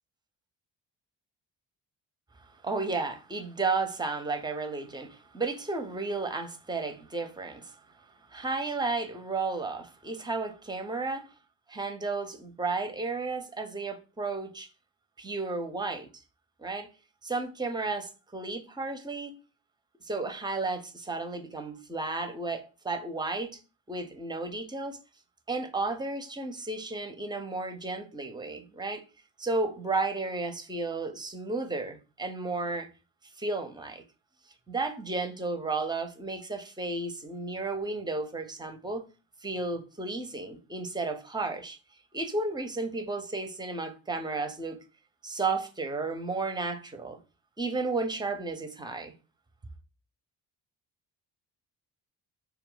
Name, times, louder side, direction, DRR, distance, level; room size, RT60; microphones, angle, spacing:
voice 1, 2.6-7.8 8.3-11.3 11.7-14.7 15.2-16.1 16.6-16.9 17.2-19.4 20.0-23.6 23.9-25.0 25.5-29.0 29.4-32.9 33.4-34.0 34.7-39.0 39.4-41.8 42.1-44.8 45.2-47.2 47.6-49.1, right 3 dB, 10° right, 0.5 m, -33 dB
2.2 x 2.1 x 3.7 m
hypercardioid pair, 50°, 49 cm